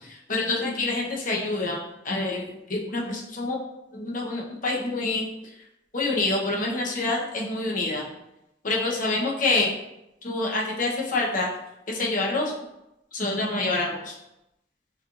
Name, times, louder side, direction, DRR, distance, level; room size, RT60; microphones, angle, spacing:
voice 1, 0.1-3.6 3.9-5.3 5.9-8.0 8.6-9.7 10.2-11.5 11.9-12.5 13.1-14.2, left 2 dB, 45° left, -2 dB, 0.9 m, -27 dB
6.2 x 3.0 x 2.5 m, 0.89 s
head